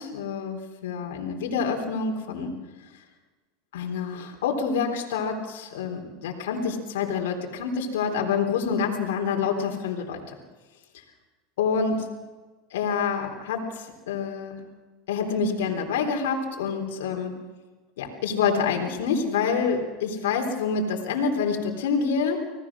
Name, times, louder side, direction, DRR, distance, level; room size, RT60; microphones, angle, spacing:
voice 1, 0.0-2.5 3.7-10.2 11.6-12.1 12.7-14.6 15.1-17.4 18.0-22.5, left 5 dB, 80° left, 2 dB, 3.8 m, -27 dB
26.5 x 19.0 x 6.3 m, 1.3 s
hypercardioid pair, 100°, 0 cm